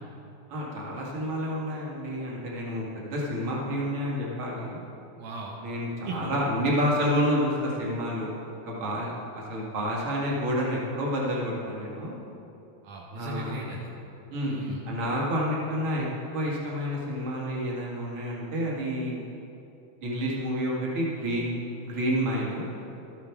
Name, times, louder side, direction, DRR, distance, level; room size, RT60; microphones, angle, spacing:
voice 1, 0.5-4.8 5.6-12.1 13.2-13.6 14.3-14.6 14.9-16.1 16.3-19.2 20.0-22.7, equal, 45° right, -4 dB, 2.5 m, -29 dB
voice 2, 5.2-5.6 6.1-6.3 12.8-13.9 14.5-14.8, right 2 dB, 75° right, -2 dB, 2.3 m, -36 dB
13.0 x 9.3 x 4.6 m, 2.8 s
omnidirectional pair, 3.7 m